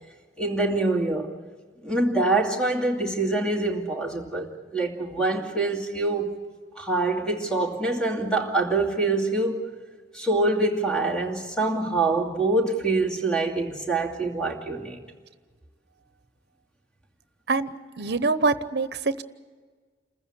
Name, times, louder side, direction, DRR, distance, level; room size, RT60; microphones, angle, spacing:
voice 1, 0.4-1.3 1.8-6.4 6.8-9.7 10.1-15.0, right 2 dB, 5° left, 2.5 m, -25 dB
voice 2, 17.5-19.2, right 3 dB, 65° right, 0.9 m, -25 dB
27.5 x 15.0 x 8.6 m
head